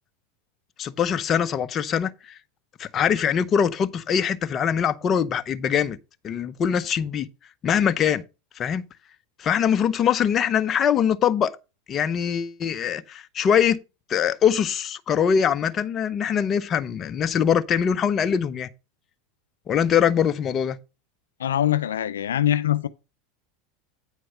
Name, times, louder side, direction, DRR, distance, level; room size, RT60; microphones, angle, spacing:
voice 1, 0.8-2.4 2.8-6.0 6.2-7.3 7.6-8.2 8.6-8.9 9.4-11.5 11.9-13.8 14.1-18.7 19.7-20.8, left 8 dB, 35° left, 0.7 m, -23 dB
voice 2, 21.4-22.9, left 11 dB, 90° left, 0.4 m, -23 dB
8.9 x 4.6 x 5.5 m
hypercardioid pair, 100°, 0 cm